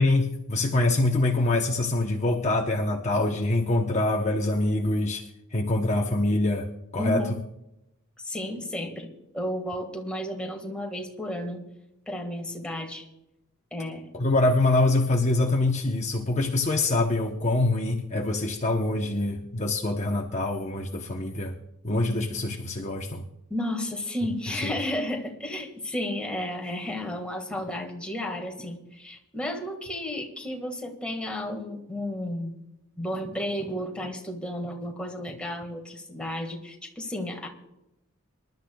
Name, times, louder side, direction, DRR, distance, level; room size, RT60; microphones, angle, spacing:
voice 1, 0.0-5.2 5.5-7.4 14.1-21.6 21.8-23.2 24.6-24.7, left 2 dB, 30° left, 1 dB, 0.8 m, -25 dB
voice 2, 7.0-7.3 8.2-11.6 12.1-13.0 13.7-14.1 23.5-32.6 33.0-37.5, left 1 dB, 5° left, 1 dB, 1.7 m, -32 dB
26.0 x 12.0 x 2.3 m, 0.87 s
head